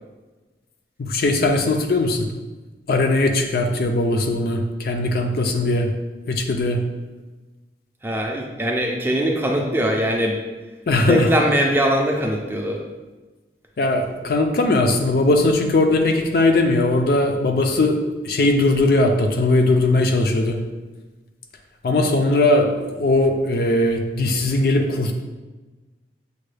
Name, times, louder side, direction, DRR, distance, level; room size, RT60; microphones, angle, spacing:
voice 1, 1.0-2.3 2.9-5.9 6.3-6.8 10.9-11.3 13.8-18.0 18.2-20.6 21.8-25.1, left 2 dB, 55° left, 4 dB, 0.4 m, -19 dB
voice 2, 8.0-10.4 11.1-12.8, equal, 10° right, 1 dB, 0.4 m, -21 dB
6.5 x 2.3 x 3.2 m, 1.2 s
head